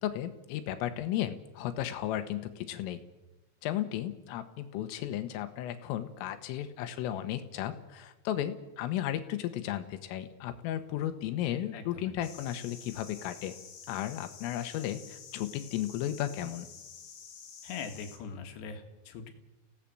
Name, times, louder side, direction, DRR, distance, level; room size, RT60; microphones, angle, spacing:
voice 1, 0.0-3.0 3.6-13.5 13.9-16.7, left 12 dB, 85° left, 10 dB, 3.7 m, -34 dB
voice 2, 11.7-12.1 17.6-19.3, left 5 dB, 65° left, 6 dB, 3.4 m, -42 dB
sound 1, 12.2-18.2, left 7 dB, 50° left, 2.8 m, -49 dB
26.0 x 16.5 x 7.6 m, 1.1 s
omnidirectional pair, 5.9 m